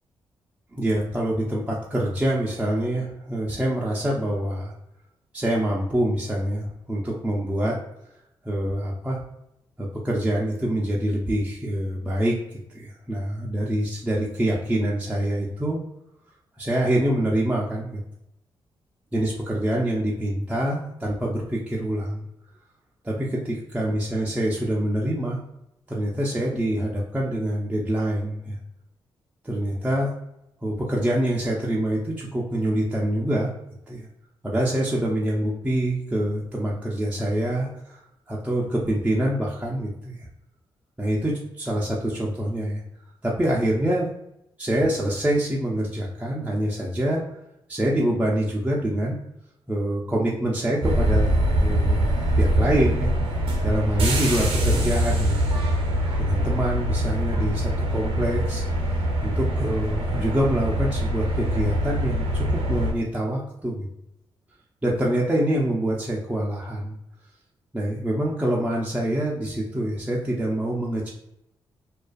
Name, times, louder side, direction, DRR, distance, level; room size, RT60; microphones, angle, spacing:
voice 1, 0.7-4.7 5.3-7.8 8.4-9.2 9.8-15.8 16.6-18.0 19.1-22.2 23.0-25.4 25.9-28.6 29.4-30.1 30.6-33.5 33.9-34.1 34.4-38.0 38.3-40.3 41.0-42.8 43.2-44.1 44.6-47.2 47.7-49.2 49.7-51.3 51.6-53.1 53.6-55.6 56.2-58.9 59.2-63.9 64.8-67.0 67.7-71.1, right 1 dB, 15° right, -4 dB, 0.4 m, -25 dB
sound 1, 50.8-62.9, equal, 70° right, 0.6 m, -23 dB
2.4 x 2.3 x 2.3 m, 0.83 s
cardioid pair, 65°, 9 cm